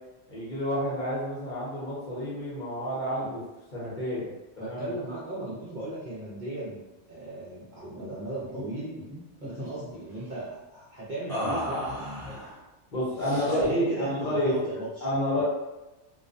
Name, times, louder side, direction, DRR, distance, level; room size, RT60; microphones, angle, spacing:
voice 1, 0.3-3.4 3.7-4.3 4.7-4.9 12.9-14.5 15.0-15.4, equal, 45° left, -8 dB, 0.9 m, -29 dB
voice 2, 4.6-8.9 9.4-12.5 13.1-15.1 15.4-15.5, right 1 dB, 55° right, -8 dB, 0.6 m, -37 dB
sound 1, 8.0-8.1 8.4-8.6 8.9-9.7 11.3-12.5 13.2-13.8, equal, 5° left, 0.9 m, -35 dB
2.3 x 2.1 x 2.5 m, 1.0 s
omnidirectional pair, 1.2 m